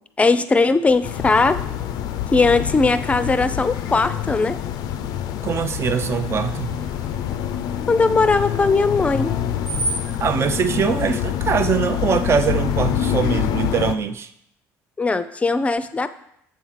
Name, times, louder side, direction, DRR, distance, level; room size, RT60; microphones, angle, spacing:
voice 1, 0.2-1.6 2.3-4.6 7.9-9.3 15.0-16.1, left 3 dB, 20° left, 12 dB, 0.5 m, -19 dB
Screech, 0.9-10.2, right 2 dB, 65° right, 1.6 m, -37 dB
sound 1, 1.0-14.0, left 10 dB, 70° left, 0.4 m, -26 dB
voice 2, 5.4-6.7 10.2-14.3, right 6 dB, 40° right, 10 dB, 0.6 m, -22 dB
7.3 x 4.5 x 5.7 m, 0.73 s
supercardioid pair, 95°, 7 cm